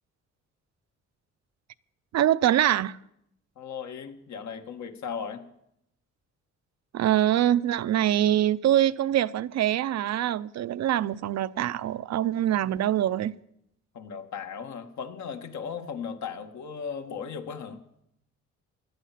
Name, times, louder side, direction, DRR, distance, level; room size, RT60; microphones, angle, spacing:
voice 1, 2.1-3.0 6.9-13.3, right 12 dB, 60° right, 0.6 m, -24 dB
voice 2, 3.5-5.4 13.9-17.8, left 6 dB, 70° left, 1.7 m, -37 dB
16.5 x 12.0 x 5.8 m
cardioid pair, 90°, 30 cm